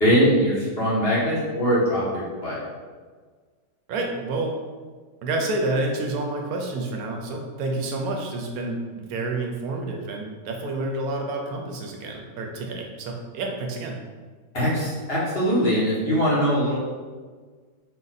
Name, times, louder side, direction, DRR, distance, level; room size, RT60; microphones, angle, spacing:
voice 1, 0.0-2.6 14.5-16.8, equal, 40° left, -8 dB, 1.4 m, -22 dB
voice 2, 3.9-4.6 5.2-14.0, right 2 dB, 75° right, 2 dB, 1.1 m, -29 dB
4.3 x 2.6 x 4.0 m, 1.5 s
omnidirectional pair, 1.6 m